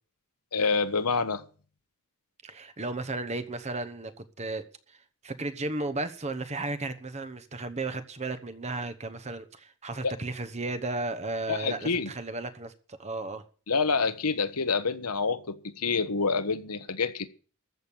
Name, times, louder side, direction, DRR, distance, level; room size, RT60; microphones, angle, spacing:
voice 1, 0.5-1.4 10.0-10.1 11.5-12.1 13.7-17.3, left 4 dB, 90° left, 1.2 m, -27 dB
voice 2, 2.4-5.0 5.2-13.4, right 2 dB, 30° right, 1.0 m, -34 dB
14.0 x 6.5 x 8.8 m
head